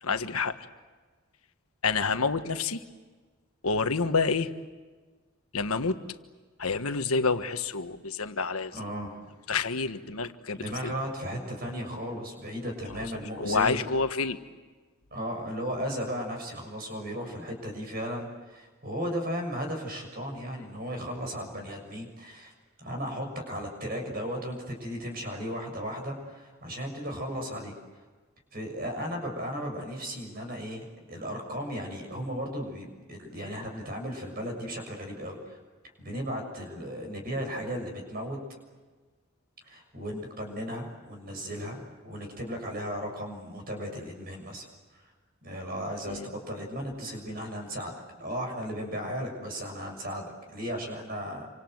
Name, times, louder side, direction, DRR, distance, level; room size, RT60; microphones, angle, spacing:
voice 1, 0.0-0.6 1.8-2.8 3.6-4.5 5.5-6.0 6.6-8.8 9.5-10.6 10.8-10.9 13.4-14.4 46.1-46.2, left 4 dB, 85° left, 9 dB, 1.4 m, -28 dB
voice 2, 8.7-9.2 10.5-13.9 15.1-22.5 22.8-27.7 28.5-35.6 36.0-38.4 39.6-44.7 44.9-45.1 45.4-51.5, equal, 45° right, 3 dB, 6.6 m, -35 dB
28.0 x 25.5 x 7.9 m, 1.4 s
head